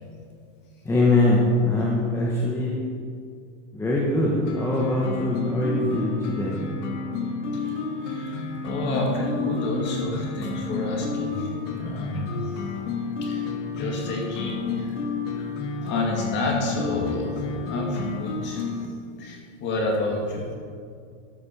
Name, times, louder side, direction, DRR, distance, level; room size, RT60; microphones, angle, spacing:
voice 1, 0.8-2.8 3.7-6.6, left 2 dB, 5° left, -4 dB, 0.9 m, -22 dB
sound 1, 4.5-18.9, left 4 dB, 90° left, 1.6 m, -31 dB
voice 2, 8.0-12.4 13.2-13.4 13.7-14.9 15.3-15.5 15.8-17.3 17.7-18.6 19.2-20.5, left 2 dB, 30° left, 0 dB, 2.2 m, -29 dB
13.0 x 6.4 x 5.5 m, 2.2 s
supercardioid pair, 160°, 35 cm